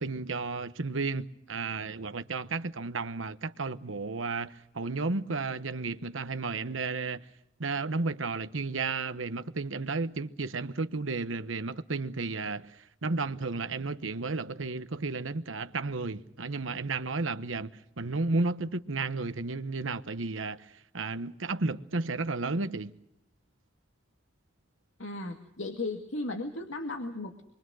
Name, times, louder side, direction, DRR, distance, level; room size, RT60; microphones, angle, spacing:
voice 1, 0.0-7.2 7.6-17.7 18.0-20.6 20.9-23.0, right 3 dB, 90° right, 1.1 m, -33 dB
voice 2, 25.0-27.4, left 2 dB, 85° left, 2.2 m, -36 dB
26.0 x 23.0 x 6.4 m
head